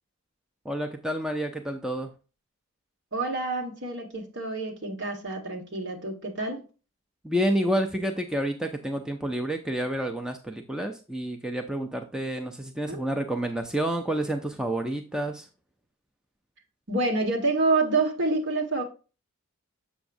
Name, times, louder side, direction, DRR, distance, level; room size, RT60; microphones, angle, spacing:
voice 1, 0.7-2.1 7.2-15.5, right 1 dB, 5° right, 0.5 m, -29 dB
voice 2, 3.1-6.6 12.9-13.0 16.9-18.8, right 3 dB, 55° right, 1.6 m, -27 dB
7.1 x 5.9 x 2.6 m
head